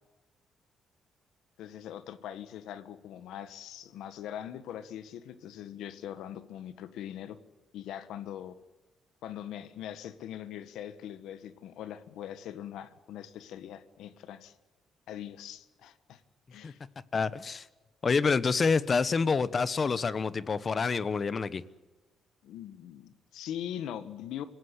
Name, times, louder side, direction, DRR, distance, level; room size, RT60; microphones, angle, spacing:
voice 1, 1.6-7.4 7.7-8.5 9.2-14.5 15.1-16.2 16.5-16.8 22.4-24.4, left 10 dB, 85° left, 1.6 m, -41 dB
voice 2, 17.1-17.7 18.0-21.6, left 5 dB, 40° left, 1.1 m, -27 dB
26.0 x 17.0 x 8.2 m
cardioid pair, 90°, 0 cm